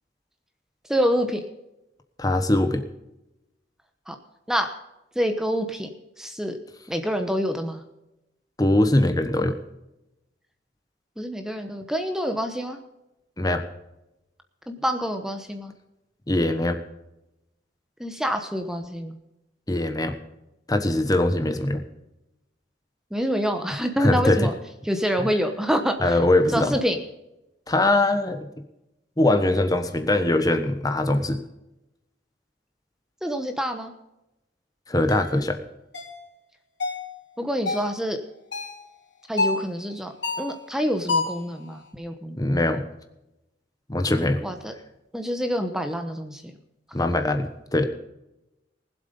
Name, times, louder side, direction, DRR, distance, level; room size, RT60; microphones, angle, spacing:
voice 1, 0.9-1.4 4.1-4.2 4.5-4.7 5.1-5.9 6.2-6.6 6.9-7.8 11.2-12.8 14.7-15.7 18.0-19.2 23.1-24.5 24.8-26.2 26.5-27.0 33.2-33.9 37.4-38.2 39.3-42.4 44.4-44.7 45.1-46.4, equal, 5° right, 6 dB, 1.0 m, -26 dB
voice 2, 2.2-2.8 8.6-9.6 13.4-13.6 16.3-16.8 19.7-20.1 20.7-21.8 24.0-24.5 25.2-25.3 26.0-26.7 27.7-28.5 29.2-31.4 34.9-35.6 42.4-42.9 43.9-44.4 46.9-47.9, left 1 dB, 20° left, 7 dB, 1.1 m, -22 dB
sound 1, 35.1-35.3 35.9-36.2 36.8-37.1 37.7-37.9 38.5-38.8 39.4-39.7 40.2-40.6 41.1-41.4, left 3 dB, 70° left, 3.8 m, -27 dB
19.5 x 7.9 x 5.4 m, 0.90 s
head